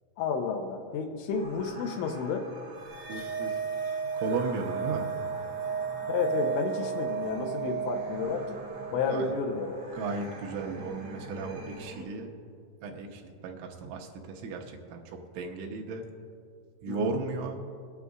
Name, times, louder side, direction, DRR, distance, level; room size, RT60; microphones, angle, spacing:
voice 1, 0.2-2.5 6.1-8.6 8.9-9.7 16.9-17.1, left 5 dB, 80° left, 3 dB, 2.9 m, -31 dB
sound 1, 1.3-12.0, right 2 dB, 70° right, 1.6 m, -45 dB
sound 2, 2.9-9.4, right 6 dB, 50° right, 1.3 m, -34 dB
voice 2, 3.1-3.6 4.1-5.1 9.1-9.4 9.9-12.3 12.8-16.1 16.8-17.6, right 4 dB, 90° right, 1 dB, 3.4 m, -35 dB
21.0 x 9.3 x 2.5 m, 2.3 s
omnidirectional pair, 5.6 m